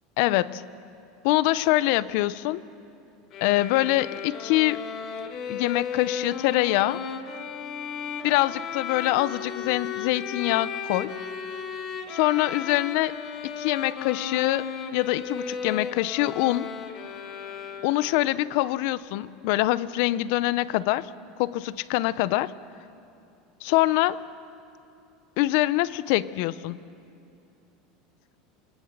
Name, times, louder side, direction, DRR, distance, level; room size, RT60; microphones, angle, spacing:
voice 1, 0.2-0.6 1.2-2.6 3.4-4.8 5.5-7.0 8.2-11.1 12.1-13.2 13.6-16.7 17.8-21.1 21.4-22.5 23.6-24.2 25.4-26.8, left 17 dB, 65° left, 18 dB, 0.6 m, -24 dB
sound 1, 3.3-18.3, left 6 dB, 45° left, 1.6 m, -35 dB
28.0 x 20.5 x 6.6 m, 2.7 s
supercardioid pair, 130°, 0 cm